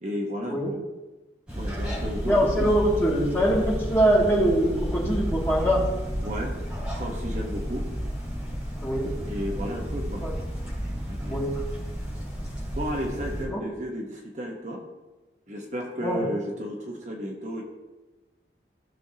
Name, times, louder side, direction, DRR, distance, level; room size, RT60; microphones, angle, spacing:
voice 1, 0.0-0.6 1.6-2.3 2.6-2.7 6.2-6.5 6.9-7.8 9.3-10.2 11.1-11.3 12.7-14.8 15.5-17.6, equal, 40° right, 0 dB, 1.2 m, -33 dB
sound 1, 1.5-13.4, equal, 5° right, 3.2 m, -32 dB
voice 2, 2.3-5.8 8.8-9.1 10.2-10.3 11.3-11.5 13.5-13.6 16.0-16.2, equal, 15° left, -6 dB, 2.3 m, -23 dB
15.0 x 6.5 x 2.9 m, 1.1 s
head